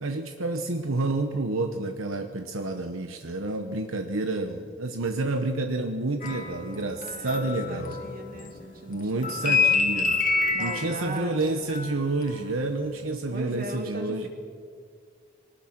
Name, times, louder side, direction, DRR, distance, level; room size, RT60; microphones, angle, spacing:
voice 1, 0.0-7.9 8.9-10.2 10.6-14.3, right 2 dB, 75° right, 6 dB, 1.1 m, -29 dB
sound 1, 6.2-8.6 8.9-12.5 12.9-13.1, left 4 dB, 40° left, 1.9 m, -27 dB
voice 2, 7.0-9.7 10.5-11.6 13.3-14.3, right 1 dB, 40° right, 3 dB, 2.6 m, -38 dB
23.0 x 19.0 x 6.1 m, 2.1 s
head